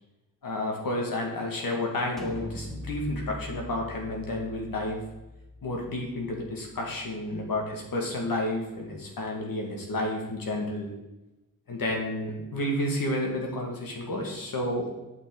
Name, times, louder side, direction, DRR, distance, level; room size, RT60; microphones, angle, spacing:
voice 1, 0.4-5.0 5.6-10.9 11.7-14.9, left 1 dB, 85° left, 1 dB, 1.9 m, -31 dB
sound 1, 2.2-7.8, left 1 dB, ahead, 0.7 m, -42 dB
8.9 x 5.9 x 3.8 m, 1.0 s
wide cardioid pair, 180°, 34 cm